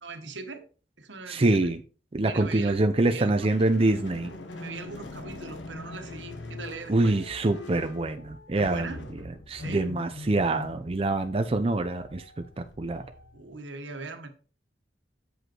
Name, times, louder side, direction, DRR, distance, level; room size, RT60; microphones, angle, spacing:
voice 1, 0.0-0.6 1.0-1.7 2.2-2.8 3.0-3.5 4.5-7.2 8.5-9.0 9.5-9.9 13.3-14.3, right 4 dB, 85° right, 1.4 m, -40 dB
voice 2, 1.3-1.8 2.1-4.3 6.9-8.9 9.5-12.2 12.6-13.1, right 2 dB, 30° right, 0.5 m, -25 dB
sound 1, 3.5-13.6, left 2 dB, 80° left, 1.2 m, -43 dB
8.0 x 5.3 x 4.5 m
head